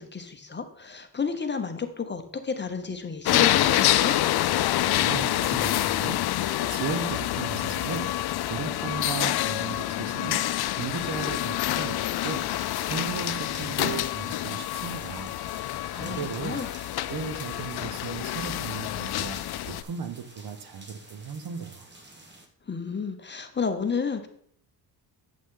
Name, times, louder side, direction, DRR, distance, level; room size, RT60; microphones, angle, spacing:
voice 1, 0.0-4.2 16.0-16.7 22.7-24.3, left 5 dB, 25° left, 7 dB, 0.9 m, -31 dB
sound 1, 3.2-19.8, left 14 dB, 60° left, 0.5 m, -27 dB
voice 2, 4.9-6.2 6.7-8.1 8.5-10.4 10.7-12.5 12.9-15.3 15.9-16.6 17.1-19.4 19.6-21.9, right 6 dB, 55° right, 9 dB, 1.0 m, -36 dB
sound 2, 11.9-22.5, right 2 dB, 25° right, 1.3 m, -50 dB
8.4 x 7.3 x 3.8 m, 0.65 s
cardioid pair, 100°, 44 cm